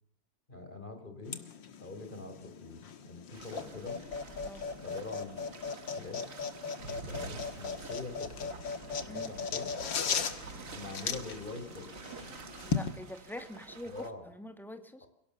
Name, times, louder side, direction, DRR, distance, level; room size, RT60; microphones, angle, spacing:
voice 1, 0.5-1.4 1.8-4.0 4.8-5.5 6.0-6.3 7.1-8.5 9.0-9.7 10.7-11.9 13.9-14.3 15.0-15.1, left 3 dB, 25° left, 6 dB, 4.2 m, -44 dB
sound 1, 1.3-12.9, left 6 dB, 85° left, 2.3 m, -38 dB
sound 2, 3.3-14.1, right 5 dB, 45° right, 2.0 m, -50 dB
sound 3, 6.8-13.1, right 3 dB, 85° right, 2.5 m, -50 dB
voice 2, 12.6-15.1, left 1 dB, ahead, 7 dB, 2.0 m, -45 dB
28.0 x 17.5 x 6.9 m, 0.70 s
omnidirectional pair, 2.0 m